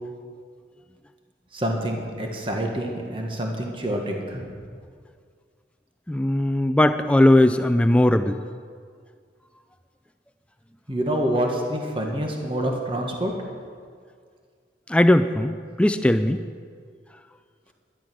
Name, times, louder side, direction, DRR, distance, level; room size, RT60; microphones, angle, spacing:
voice 1, 1.5-4.7 10.9-13.3, right 1 dB, 30° right, 1 dB, 1.6 m, -27 dB
voice 2, 6.1-8.4 14.9-16.4, left 1 dB, 5° left, 10 dB, 0.3 m, -19 dB
12.0 x 11.5 x 6.2 m, 2.1 s
head